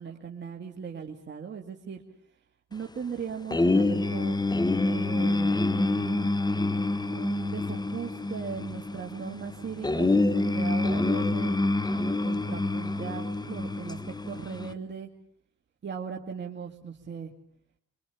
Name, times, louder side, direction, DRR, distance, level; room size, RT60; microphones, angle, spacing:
voice 1, 0.0-2.0 2.7-4.4 4.8-6.3 7.1-11.5 11.9-14.0 14.3-15.1 15.8-17.3, right 6 dB, 35° right, 2 dB, 2.3 m, -38 dB
sound 1, 3.5-14.7, left 2 dB, 15° left, 1.2 m, -27 dB
26.0 x 24.0 x 7.1 m, 0.63 s
cardioid pair, 90°, 30 cm